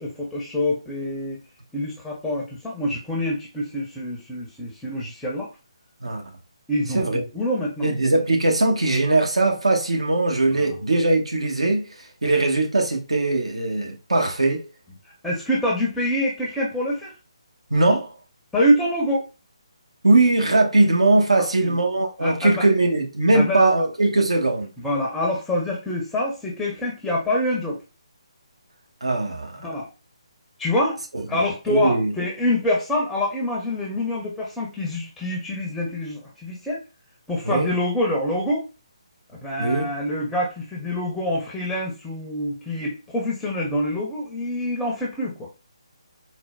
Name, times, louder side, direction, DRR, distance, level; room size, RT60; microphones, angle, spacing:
voice 1, 0.0-1.4 1.7-5.5 6.7-7.0 7.3-7.9 10.5-10.8 15.1-17.1 18.5-19.2 21.4-21.8 22.2-22.6 23.3-23.6 24.8-27.8 29.6-29.9 30.6-31.0 31.3-36.8 37.3-38.7 39.4-45.5, left 1 dB, 5° left, 0.5 m, -25 dB
voice 2, 6.9-7.3 7.8-14.6 17.7-18.1 20.0-24.7 29.0-29.6 31.7-32.1 37.4-37.7 39.6-39.9, right 2 dB, 75° right, 0.8 m, -20 dB
4.2 x 2.0 x 2.2 m
figure-of-eight pair, 145°, 3 cm